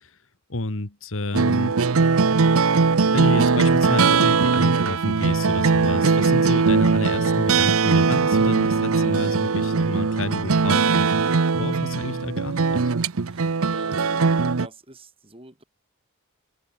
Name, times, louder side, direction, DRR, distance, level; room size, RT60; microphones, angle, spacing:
voice 1, 0.5-1.9 3.1-12.8, left 2 dB, 65° left, 1.7 m, -30 dB
sound 1, 1.3-14.7, right 4 dB, 70° right, 0.7 m, -20 dB
voice 2, 13.3-15.6, right 1 dB, 25° right, 5.2 m, -45 dB
head